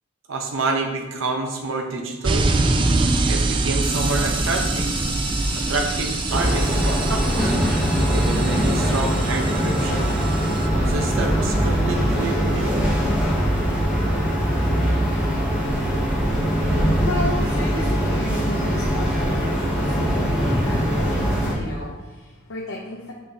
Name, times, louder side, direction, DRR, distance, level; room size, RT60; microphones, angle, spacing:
voice 1, 0.3-2.5 3.3-4.9 5.5-7.5 8.1-10.1 10.7-12.9, right 3 dB, 75° right, 2 dB, 0.9 m, -28 dB
sound 1, 2.2-10.7, right 2 dB, 25° right, 0.3 m, -24 dB
sound 2, 3.8-19.2, left 1 dB, 50° left, 1.7 m, -39 dB
sound 3, 6.3-21.5, equal, 5° right, 1.5 m, -22 dB
voice 2, 16.3-23.1, left 1 dB, 75° left, -3 dB, 0.8 m, -33 dB
6.1 x 5.8 x 2.8 m, 1.2 s
head